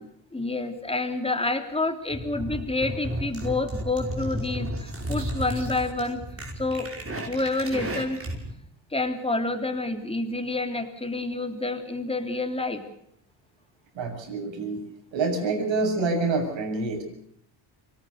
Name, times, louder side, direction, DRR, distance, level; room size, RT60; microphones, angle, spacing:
voice 1, 0.3-6.2 6.6-6.9 7.3-8.2 8.9-12.8, left 2 dB, 10° left, 7 dB, 3.3 m, -28 dB
sound 1, 2.1-8.5, equal, 25° right, 5.5 m, -33 dB
voice 2, 14.0-14.8 15.1-17.0, right 3 dB, 65° right, 4 dB, 7.5 m, -27 dB
24.5 x 18.5 x 6.6 m, 0.70 s
cardioid pair, 90°, 48 cm